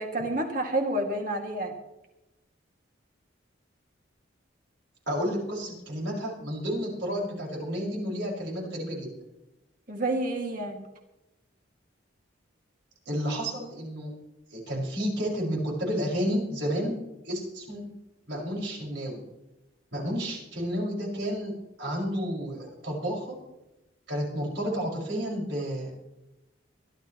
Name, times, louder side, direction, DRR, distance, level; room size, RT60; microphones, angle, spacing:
voice 1, 0.0-1.7 9.9-10.8, right 1 dB, 45° right, 2 dB, 2.3 m, -29 dB
voice 2, 5.1-9.1 13.1-14.1 14.5-17.0 17.2-17.9 18.3-19.2 19.9-21.5 21.8-23.4 24.1-25.9, equal, 65° right, -2 dB, 5.7 m, -31 dB
24.0 x 12.0 x 3.1 m, 0.95 s
head